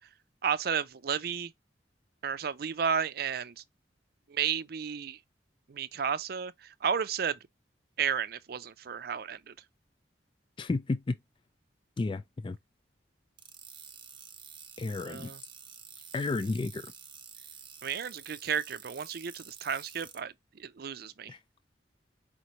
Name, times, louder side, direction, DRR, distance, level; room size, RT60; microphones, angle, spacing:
voice 1, 0.4-1.5 2.2-3.5 4.3-5.2 5.7-6.5 6.8-7.4 8.0-9.5 15.0-15.4 17.8-20.3 20.6-21.3, right 7 dB, 60° right, 0.5 m, -32 dB
voice 2, 10.6-11.2 12.0-12.6 14.8-15.3 16.1-16.8 21.3-21.4, left 3 dB, 30° left, 0.3 m, -32 dB
sound 1, 13.4-20.2, right 7 dB, 25° right, 0.8 m, -49 dB
5.0 x 3.1 x 2.8 m
head